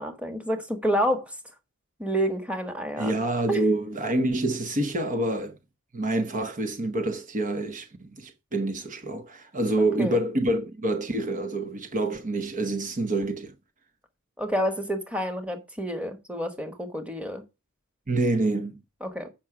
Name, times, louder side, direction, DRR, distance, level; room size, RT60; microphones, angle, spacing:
voice 1, 0.0-1.4 2.0-3.1 3.5-3.6 9.8-10.2 14.4-17.4 19.0-19.3, equal, 5° right, 1.4 m, -29 dB
voice 2, 3.0-5.6 5.9-13.5 18.1-18.8, right 1 dB, 35° right, 0.8 m, -27 dB
7.5 x 5.9 x 5.9 m
head